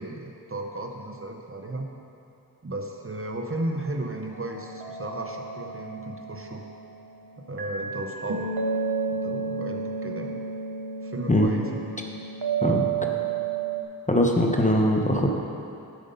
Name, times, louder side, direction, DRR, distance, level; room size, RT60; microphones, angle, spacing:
voice 1, 0.0-1.9 2.6-6.6 7.5-8.5 9.1-10.4 11.0-11.8, right 1 dB, 35° right, 2 dB, 0.8 m, -34 dB
sound 1, 4.3-7.1 7.6-13.8, right 6 dB, 80° right, 1.0 m, -31 dB
voice 2, 14.1-15.3, left 1 dB, 20° left, 1 dB, 0.9 m, -21 dB
8.1 x 7.9 x 5.3 m, 2.6 s
wide cardioid pair, 60°, 37 cm